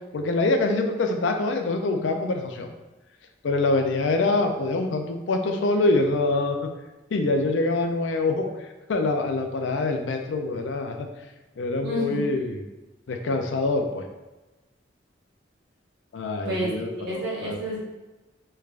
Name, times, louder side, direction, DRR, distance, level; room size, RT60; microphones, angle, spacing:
voice 1, 0.1-2.7 3.4-6.7 7.1-8.5 8.9-11.1 11.6-12.6 13.1-14.1 16.1-17.6, left 2 dB, 90° left, 5 dB, 0.4 m, -25 dB
voice 2, 11.8-12.2 16.4-17.8, equal, 70° right, -6 dB, 1.1 m, -30 dB
3.3 x 3.2 x 2.4 m, 1.1 s
head